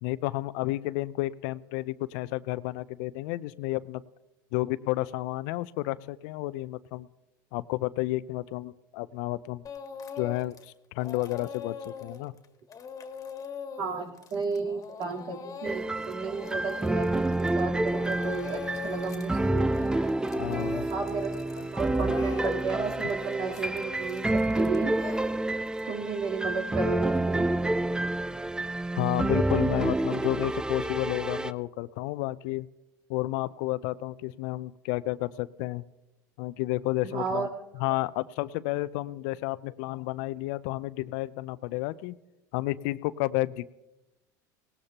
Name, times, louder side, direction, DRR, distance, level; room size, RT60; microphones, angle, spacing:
voice 1, 0.0-4.0 4.5-7.1 7.5-9.6 10.2-12.3 20.4-20.9 21.6-21.7 28.9-32.7 33.1-35.8 36.4-37.5 37.7-42.2 42.5-43.7, left 18 dB, 70° left, 17 dB, 0.5 m, -31 dB
Speech / Crying sobbing, 9.6-10.7 11.0-17.6 17.9-19.3 19.6-25.8, left 5 dB, 35° left, 1.7 m, -42 dB
voice 2, 13.8-19.9 20.9-21.3 21.7-25.0 25.9-27.5 37.0-37.5, right 5 dB, 60° right, -2 dB, 3.4 m, -33 dB
sound 1, 15.6-31.5, right 2 dB, 10° right, 0.4 m, -28 dB
19.0 x 18.5 x 2.9 m, 0.97 s
hypercardioid pair, 85°, 10 cm